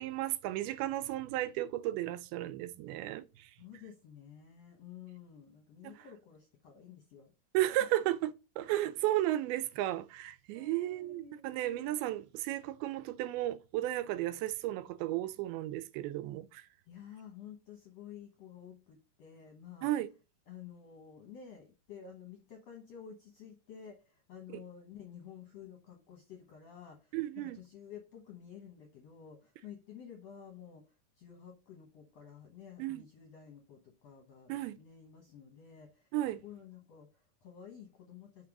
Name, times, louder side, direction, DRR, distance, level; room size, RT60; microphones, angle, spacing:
voice 1, 0.0-3.5 5.8-5.9 7.5-8.3 8.6-16.7 19.8-20.1 27.1-27.6 32.8-33.0 34.5-34.8 36.1-36.4, right 14 dB, 85° right, 2.4 m, -34 dB
voice 2, 3.6-7.3 8.0-8.1 10.5-12.1 16.9-19.9 20.5-36.1 36.4-38.5, left 8 dB, 65° left, 1.6 m, -52 dB
5.8 x 5.1 x 5.9 m
omnidirectional pair, 4.4 m